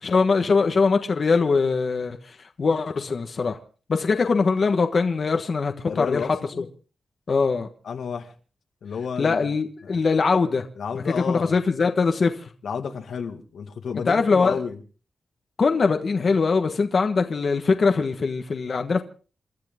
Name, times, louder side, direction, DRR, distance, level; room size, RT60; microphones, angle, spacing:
voice 1, 0.0-3.6 3.9-6.3 6.6-6.7 7.3-7.7 9.2-10.7 11.2-12.4 14.1-14.6 15.6-19.0, left 4 dB, 45° left, 1.4 m, -22 dB
voice 2, 5.9-6.7 7.8-8.3 8.8-9.6 9.8-10.0 10.8-11.6 12.6-14.8, left 6 dB, 85° left, 2.1 m, -31 dB
28.5 x 13.0 x 3.7 m
wide cardioid pair, 145°, 0 cm